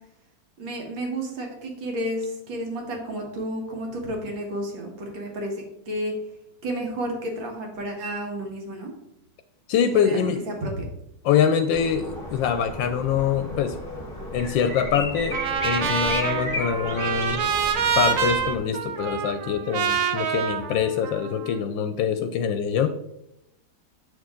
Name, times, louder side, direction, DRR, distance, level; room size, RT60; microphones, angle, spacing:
voice 1, 0.6-6.1 6.6-8.9 9.9-10.9, right 1 dB, 75° right, 1 dB, 2.3 m, -31 dB
voice 2, 9.7-10.4 11.2-13.8 14.3-17.4 17.9-22.9, left 7 dB, 75° left, 8 dB, 1.2 m, -24 dB
sound 1, 11.7-18.6, left 1 dB, 10° left, 1.7 m, -34 dB
Trumpet, 15.3-21.5, right 7 dB, 60° right, 1.0 m, -26 dB
8.5 x 6.2 x 3.7 m, 0.83 s
omnidirectional pair, 2.1 m